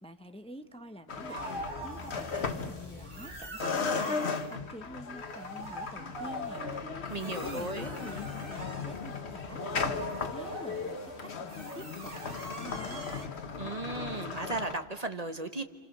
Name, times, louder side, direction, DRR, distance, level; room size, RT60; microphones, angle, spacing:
voice 1, 0.0-4.2 4.5-6.6 7.2-13.1, right 1 dB, 5° left, 8 dB, 1.0 m, -47 dB
sound 1, 1.1-3.3 3.6-14.7, left 5 dB, 75° left, 1.5 m, -36 dB
sound 2, 1.3-3.5, left 3 dB, 20° left, 1.9 m, -47 dB
sound 3, 1.3-2.7 3.1-4.6 5.0-13.3, right 2 dB, 55° right, 2.5 m, -43 dB
voice 2, 7.1-7.8 13.6-15.6, right 2 dB, 35° right, 8 dB, 1.2 m, -36 dB
30.0 x 26.5 x 6.7 m, 1.3 s
omnidirectional pair, 1.1 m